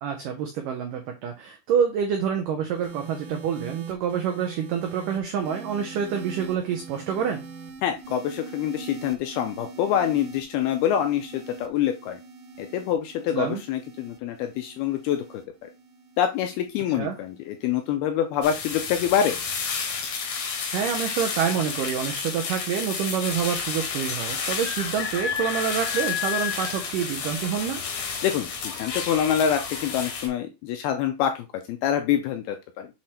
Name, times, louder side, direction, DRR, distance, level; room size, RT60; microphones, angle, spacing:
voice 1, 0.0-7.4 13.3-13.6 17.0-17.2 20.7-27.8, right 8 dB, 90° right, 3 dB, 1.9 m, -27 dB
sound 1, 2.7-19.2 20.1-20.5, right 5 dB, 70° right, 2.0 m, -43 dB
voice 2, 7.8-12.2 12.6-15.7 16.2-19.4 28.2-32.9, left 9 dB, 80° left, 6 dB, 2.3 m, -26 dB
sound 2, 18.4-30.3, left 6 dB, 65° left, 1.8 m, -30 dB
7.8 x 3.2 x 4.3 m, 0.25 s
omnidirectional pair, 5.0 m